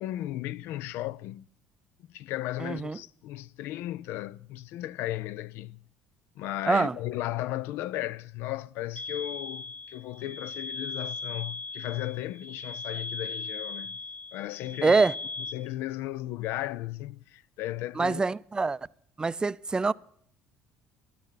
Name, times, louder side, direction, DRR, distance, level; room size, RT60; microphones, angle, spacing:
voice 1, 0.0-1.5 2.0-5.8 6.4-14.0 14.3-15.0 15.5-18.2, left 15 dB, 70° left, 0.5 m, -35 dB
voice 2, 2.6-3.0 6.7-6.9 14.8-15.1 18.0-18.9 19.2-19.9, right 3 dB, 20° right, 0.5 m, -25 dB
sound 1, 9.0-15.5, left 3 dB, 35° left, 2.2 m, -38 dB
13.0 x 12.5 x 5.8 m
supercardioid pair, 80°, 4 cm